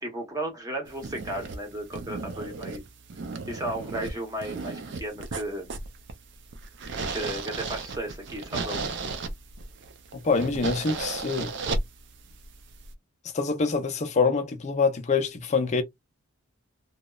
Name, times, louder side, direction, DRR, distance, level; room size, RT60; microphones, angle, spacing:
voice 1, 0.0-2.8 3.5-5.7 7.1-8.9, right 1 dB, 15° right, 0.8 m, -34 dB
sound 1, 0.9-12.9, right 3 dB, 55° right, 0.4 m, -35 dB
voice 2, 10.2-11.5 13.3-15.8, left 4 dB, 35° left, 0.5 m, -25 dB
2.8 x 2.0 x 2.2 m
head